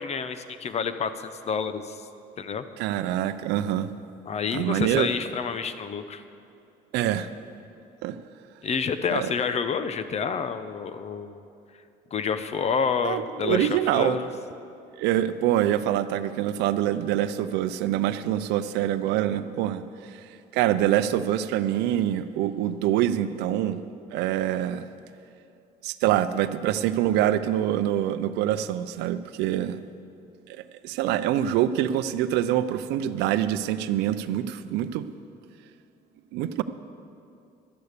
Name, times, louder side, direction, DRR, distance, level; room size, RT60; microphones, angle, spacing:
voice 1, 0.0-2.0 2.4-2.6 4.3-6.2 8.6-11.4 12.1-14.3, left 6 dB, 40° left, 11 dB, 0.7 m, -28 dB
voice 2, 2.8-3.9 4.5-5.1 6.9-7.3 8.0-8.2 9.1-9.3 13.0-14.2 15.0-20.2 20.5-23.8 24.1-24.9 25.8-29.8 30.5-30.6 30.8-35.1 36.3-36.6, right 12 dB, 90° right, 12 dB, 0.5 m, -25 dB
12.0 x 9.7 x 6.7 m, 2.6 s
cardioid pair, 110°, 17 cm